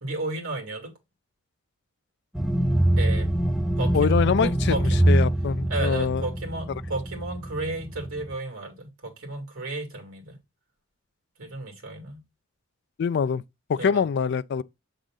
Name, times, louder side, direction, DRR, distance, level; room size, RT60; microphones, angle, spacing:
voice 1, 0.0-0.9 3.0-3.3 3.8-5.1 5.7-10.4 11.4-12.2 13.7-14.0, right 2 dB, 90° right, 2.3 m, -33 dB
sound 1, 2.4-8.3, right 1 dB, ahead, 0.5 m, -24 dB
voice 2, 3.9-4.8 5.1-6.2 13.0-13.4 13.7-14.6, left 6 dB, 55° left, 0.3 m, -24 dB
7.3 x 3.8 x 3.8 m
head